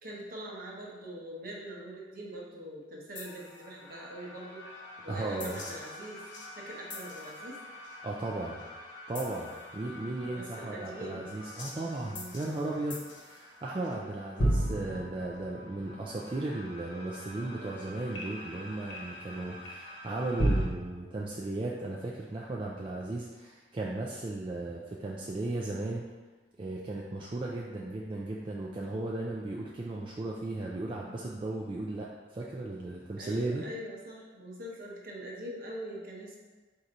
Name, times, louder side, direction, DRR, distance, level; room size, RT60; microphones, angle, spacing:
voice 1, 0.0-6.2 6.5-7.6 10.2-11.2 12.0-12.4 13.8-14.1 33.2-36.4, equal, 50° right, -3 dB, 0.9 m, -43 dB
sound 1, 3.1-20.7, right 1 dB, 75° left, 1.0 m, -38 dB
voice 2, 5.1-5.6 8.0-8.6 9.1-26.0 26.6-33.6, right 2 dB, 30° right, -3 dB, 0.3 m, -36 dB
4.6 x 2.8 x 3.8 m, 1.3 s
head